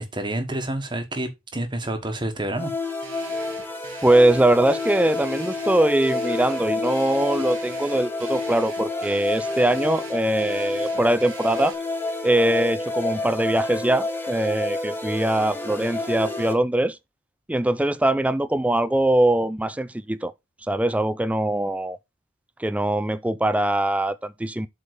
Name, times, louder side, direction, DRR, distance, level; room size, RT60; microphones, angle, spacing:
voice 1, 0.0-2.7, right 1 dB, 20° right, 1.2 m, -28 dB
sound 1, 2.5-16.5, left 2 dB, 10° left, 1.2 m, -29 dB
sound 2, 3.0-11.7, right 6 dB, 70° right, 1.1 m, -44 dB
voice 2, 4.0-11.8 12.2-17.0 17.5-20.3 20.7-22.0 22.6-24.7, right 1 dB, 5° right, 0.3 m, -22 dB
7.9 x 3.7 x 4.9 m
head